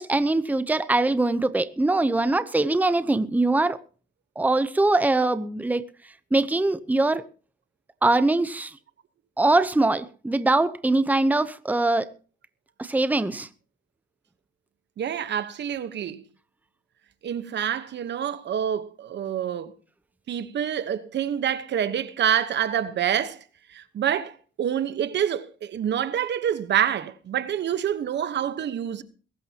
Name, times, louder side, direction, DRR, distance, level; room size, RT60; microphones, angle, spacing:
voice 1, 0.0-3.8 4.4-5.8 6.3-7.2 8.0-8.8 9.4-12.1 12.8-13.5, right 2 dB, 10° right, 0.8 m, -22 dB
voice 2, 15.0-16.2 17.2-19.7 20.3-23.4 23.7-29.0, right 9 dB, 60° right, 1.2 m, -27 dB
21.5 x 12.5 x 2.9 m
cardioid pair, 90°, 20 cm